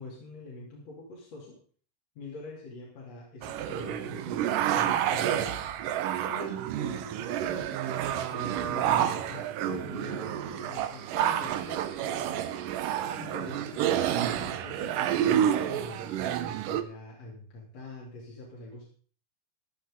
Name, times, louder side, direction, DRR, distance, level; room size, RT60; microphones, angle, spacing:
voice 1, 0.0-1.6 2.2-5.6 6.3-7.9 8.3-12.6 13.2-18.8, left 2 dB, 50° left, -4 dB, 4.0 m, -44 dB
sound 1, 3.4-16.8, right 10 dB, 85° right, 2.5 m, -29 dB
15.5 x 11.0 x 3.7 m, 0.43 s
omnidirectional pair, 3.8 m